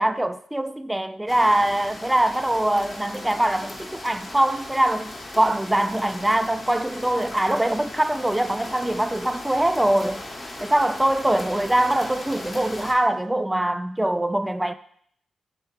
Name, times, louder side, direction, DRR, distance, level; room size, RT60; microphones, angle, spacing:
voice 1, 0.0-10.2 10.6-14.7, right 1 dB, 10° right, 0.3 m, -23 dB
sound 1, 1.3-12.9, left 1 dB, 35° left, 0.9 m, -38 dB
3.5 x 3.2 x 4.6 m
supercardioid pair, 50°, 0 cm